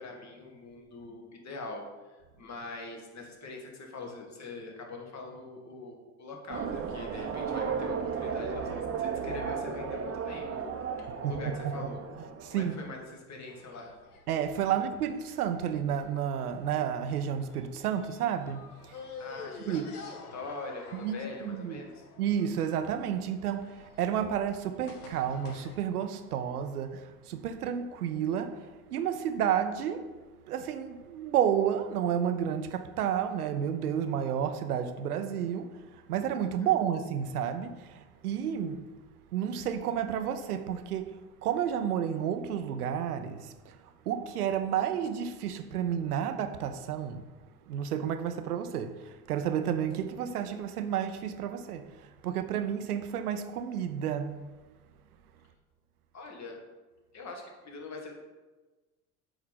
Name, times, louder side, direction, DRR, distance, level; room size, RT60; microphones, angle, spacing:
voice 1, 0.0-10.7 11.0-12.0 12.4-14.0 19.2-20.0 20.3-22.0 36.6-36.7 56.1-56.6 57.1-58.2, left 3 dB, 40° left, 1.9 m, -43 dB
sound 1, 6.5-12.8, right 6 dB, 30° right, 0.8 m, -34 dB
voice 2, 11.2-11.7 12.4-12.8 14.3-18.6 19.7-19.9 20.9-21.1 21.4-21.9 22.2-28.6 28.9-30.1 30.5-35.7 36.1-38.8 39.3-43.8 44.1-47.2 47.7-51.9 52.2-54.4, right 9 dB, 85° right, 0.7 m, -31 dB
sound 2, 13.5-25.8, left 4 dB, 85° left, 1.1 m, -50 dB
7.8 x 5.2 x 4.1 m
hypercardioid pair, 70°, 44 cm